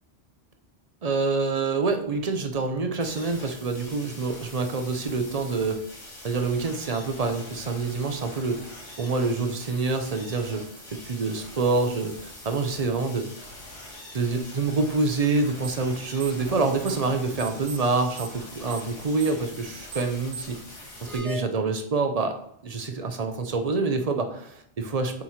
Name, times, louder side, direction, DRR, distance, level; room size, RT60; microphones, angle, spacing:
voice 1, 1.0-5.8 6.2-8.6 9.0-10.6 10.9-13.3 14.1-20.6 21.0-22.3 22.6-25.2, right 3 dB, 40° right, 5 dB, 0.6 m, -26 dB
sound 1, 3.0-21.2, left 1 dB, 85° left, 2.1 m, -44 dB
sound 2, 15.6-15.9 16.2-17.1 17.4-20.6, right 6 dB, 75° right, 0.9 m, -38 dB
sound 3, 16.3-18.0 18.3-18.4 21.0-21.5, right 2 dB, ahead, 0.5 m, -41 dB
7.5 x 3.1 x 4.2 m, 0.70 s
omnidirectional pair, 1.2 m